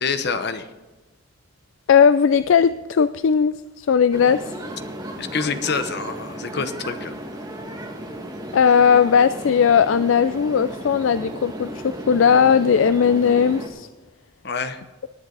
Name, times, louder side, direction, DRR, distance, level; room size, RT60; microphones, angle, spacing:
voice 1, 0.0-0.7 5.2-7.2 14.4-14.8, left 5 dB, 55° left, 9 dB, 1.0 m, -26 dB
voice 2, 1.9-4.4 8.5-13.9, left 6 dB, 70° left, 13 dB, 0.4 m, -17 dB
sound 1, 4.1-13.7, right 1 dB, 20° right, 1.8 m, -34 dB
19.0 x 9.5 x 4.0 m, 1.2 s
head